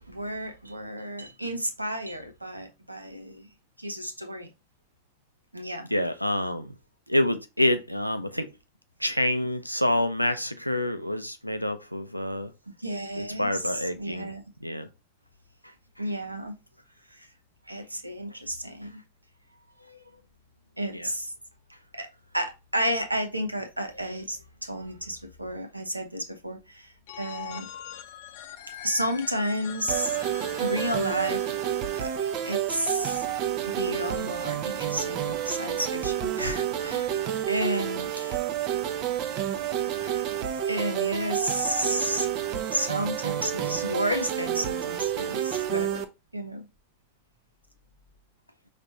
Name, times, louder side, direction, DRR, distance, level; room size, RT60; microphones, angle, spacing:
voice 1, 0.1-3.5 3.8-4.5 5.5-5.9 12.8-14.4 16.0-16.5 17.1-17.3 17.7-19.0 19.8-20.0 20.8-21.3 21.9-22.1 22.3-27.7 28.8-31.4 32.0-32.1 32.5-33.2 33.7-38.1 40.7-42.3 42.7-46.1 46.3-46.6, right 1 dB, 85° right, 0.8 m, -32 dB
voice 2, 5.9-6.7 7.1-8.5 9.0-12.5 13.2-14.3 14.6-14.9 20.9-21.1 38.3-38.4 40.0-40.2, left 1 dB, 90° left, 0.5 m, -27 dB
Telephone, 27.1-32.8, left 12 dB, 50° left, 0.6 m, -43 dB
sound 1, 29.9-46.0, right 10 dB, 40° right, 0.6 m, -29 dB
5.2 x 3.3 x 2.7 m
figure-of-eight pair, 90°, 0 cm